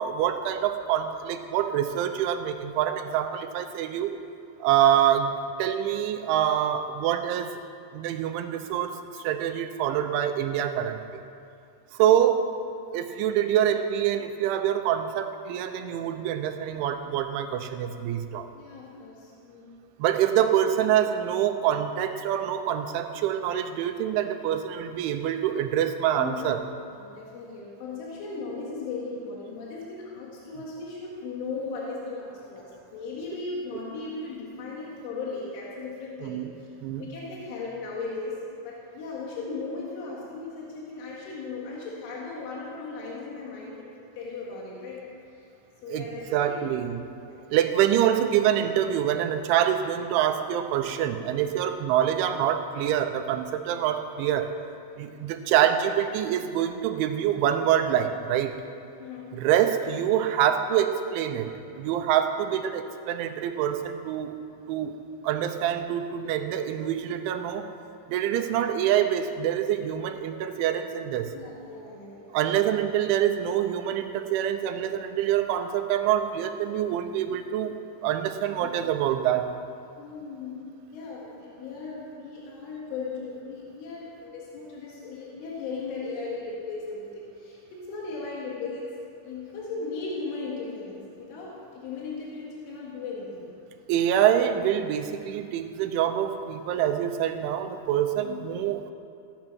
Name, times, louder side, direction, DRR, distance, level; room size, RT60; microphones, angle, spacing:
voice 1, 0.0-4.1 4.6-5.3 5.6-7.6 7.9-11.2 11.9-12.5 12.9-18.5 20.0-26.6 36.2-36.5 36.8-37.0 45.9-46.1 46.3-47.1 47.5-54.5 55.0-58.5 59.3-61.5 61.8-64.4 64.7-65.0 65.2-67.7 68.1-71.3 72.3-77.8 78.0-79.5 93.9-98.9, right 10 dB, 90° right, 7 dB, 3.1 m, -25 dB
voice 2, 18.5-19.7 26.2-36.7 37.0-38.4 38.6-43.9 44.2-45.5 45.8-46.6 47.3-47.6 59.0-59.3 71.3-72.5 78.6-78.7 80.0-80.6 80.9-88.9 89.2-93.5 98.2-98.5, left 4 dB, 90° left, -4 dB, 4.3 m, -37 dB
15.5 x 11.0 x 6.1 m, 2.4 s
omnidirectional pair, 5.4 m